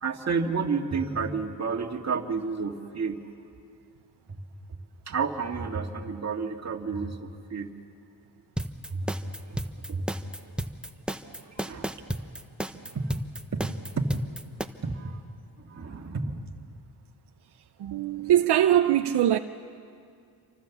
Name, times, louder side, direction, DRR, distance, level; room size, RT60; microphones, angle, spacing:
voice 1, 0.0-3.2 4.3-4.4 5.1-7.7 8.9-9.1 9.5-9.6 9.9-10.1 11.5-12.0 12.9-13.0 13.5-14.1 14.8-15.2 15.6-16.4, right 5 dB, 40° right, 1.9 m, -31 dB
sound 1, 8.6-14.7, right 1 dB, ahead, 1.0 m, -33 dB
voice 2, 17.8-19.4, right 11 dB, 80° right, 0.7 m, -22 dB
28.5 x 24.5 x 7.1 m
cardioid pair, 100°, 39 cm